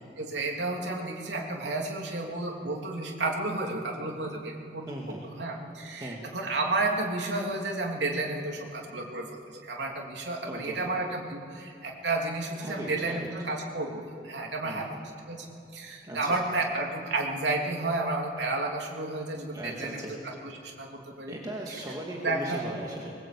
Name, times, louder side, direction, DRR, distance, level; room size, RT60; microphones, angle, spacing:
voice 1, 0.2-4.9 5.4-9.3 9.6-14.9 15.3-15.5 15.7-20.0 20.6-20.9 21.2-21.4 22.2-22.7, right 2 dB, 85° right, 0 dB, 3.1 m, -31 dB
voice 2, 4.9-5.3 6.0-6.2 10.4-10.9 12.6-13.3 14.6-15.0 16.0-16.4 19.5-20.1 21.3-23.1, right 1 dB, 20° right, -2 dB, 2.3 m, -38 dB
22.5 x 20.0 x 8.6 m, 2.5 s
head